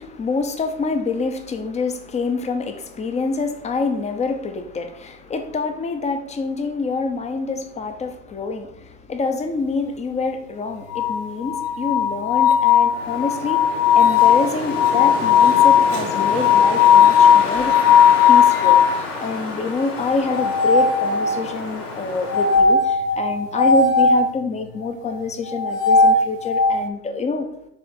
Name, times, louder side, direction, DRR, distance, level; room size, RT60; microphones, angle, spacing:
voice 1, 0.0-18.0 18.3-27.5, left 4 dB, 15° left, 0.5 m, -26 dB
sound 1, 10.9-19.0 20.3-21.6 22.3-24.3 25.5-26.8, left 7 dB, 90° left, 0.7 m, -16 dB
Wind, 12.8-22.7, left 3 dB, 70° left, 2.4 m, -30 dB
6.9 x 3.4 x 4.2 m
hypercardioid pair, 95°, 46 cm